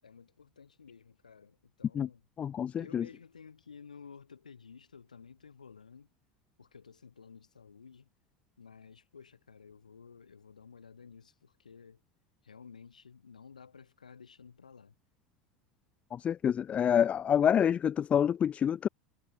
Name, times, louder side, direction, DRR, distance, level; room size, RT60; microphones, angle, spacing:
voice 1, 0.0-2.2 2.8-6.1 6.6-8.1 8.6-12.0 12.4-14.9, left 6 dB, 85° left, 7.3 m, -53 dB
voice 2, 2.4-3.1 16.1-18.9, left 8 dB, 35° left, 1.0 m, -27 dB
hypercardioid pair, 80°, 4 cm